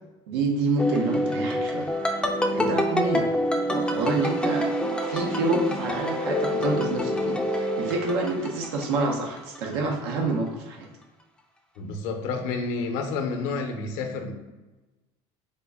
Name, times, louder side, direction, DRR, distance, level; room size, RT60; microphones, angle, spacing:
voice 1, 0.3-1.9 2.5-3.3 3.7-4.7 5.0-10.9, right 3 dB, 90° right, 1 dB, 0.6 m, -27 dB
sound 1, 0.8-9.1 9.4-9.9, equal, 5° left, 0.3 m, -27 dB
voice 2, 11.8-14.3, left 4 dB, 70° left, 4 dB, 0.6 m, -29 dB
3.6 x 2.1 x 3.5 m, 1.1 s
supercardioid pair, 120°, 13 cm